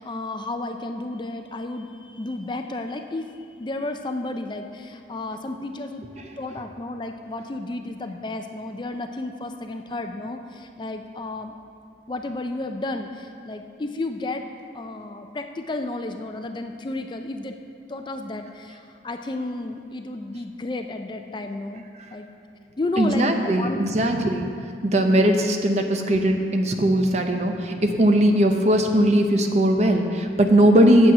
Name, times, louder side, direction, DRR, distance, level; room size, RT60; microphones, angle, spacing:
voice 1, 0.0-6.0 6.4-11.5 12.1-14.4 14.7-17.6 17.9-21.8 22.1-22.3 22.8-23.8 25.0-25.4, left 2 dB, 25° left, 6 dB, 0.4 m, -32 dB
voice 2, 23.0-24.5 24.8-31.1, right 1 dB, 40° right, 4 dB, 0.7 m, -19 dB
8.9 x 7.5 x 5.9 m, 2.5 s
head